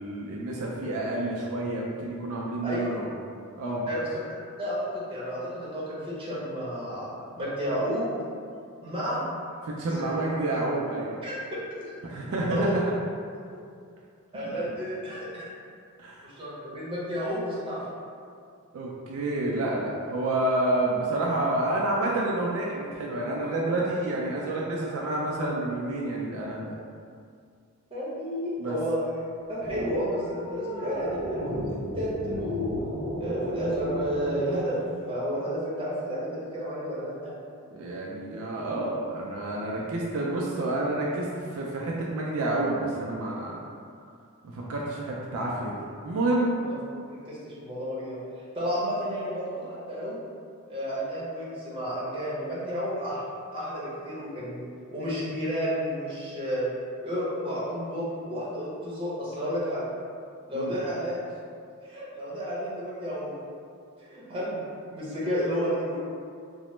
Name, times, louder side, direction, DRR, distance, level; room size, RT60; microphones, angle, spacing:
voice 1, 0.0-3.1 3.6-3.8 9.6-11.1 12.0-12.8 14.5-14.6 16.0-16.2 18.7-26.7 28.6-28.8 37.7-43.6 44.4-45.8 46.0-46.5 60.5-60.7, right 2 dB, 65° right, -3 dB, 0.3 m, -29 dB
voice 2, 4.6-7.1 7.3-8.0 8.8-9.2 9.9-10.2 11.2-11.3 11.8-11.9 12.5-12.7 14.3-15.5 16.2-17.8 27.9-29.2 29.5-32.7 33.2-34.7 35.1-37.3 46.6-46.7 47.1-48.2 48.5-50.1 50.7-53.2 53.5-54.6 54.9-56.6 57.0-59.8 60.5-61.2 61.8-63.3 64.0-64.6 64.9-66.0, equal, 25° right, -8 dB, 0.7 m, -31 dB
sound 1, 29.6-34.4, equal, 70° left, 0.8 m, -33 dB
2.9 x 2.0 x 3.1 m, 2.3 s
head